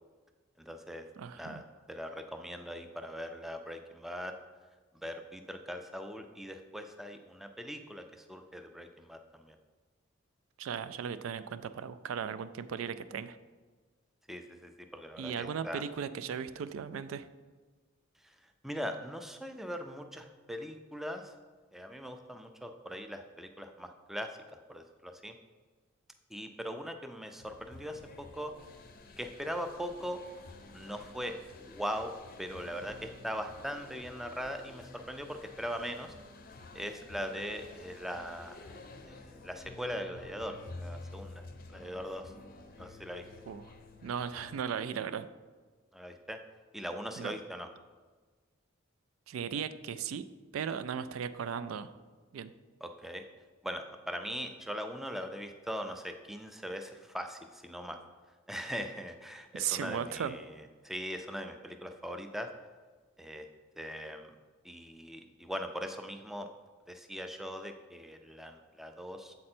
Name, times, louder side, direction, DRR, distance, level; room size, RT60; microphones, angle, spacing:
voice 1, 0.6-1.1 1.3-4.3 4.9-9.6 14.3-15.9 18.2-21.3 21.7-25.4 26.3-28.5 29.2-30.2 30.7-36.1 36.7-38.7 39.0-41.4 41.7-42.3 42.8-43.3 45.9-46.4 46.7-47.7 52.8-53.2 53.6-58.0 58.5-62.5 63.2-63.5 63.8-64.3 64.6-66.5 66.9-69.3, equal, ahead, 6 dB, 0.4 m, -40 dB
voice 2, 1.2-1.6 10.6-13.4 15.2-17.3 43.5-43.7 44.0-45.3 47.2-47.4 49.3-50.3 50.5-51.9 52.3-52.5 59.5-60.4, right 7 dB, 85° right, 13 dB, 0.3 m, -37 dB
sound 1, 27.4-44.5, left 2 dB, 45° left, 0.5 m, -50 dB
7.5 x 4.3 x 4.3 m, 1.4 s
head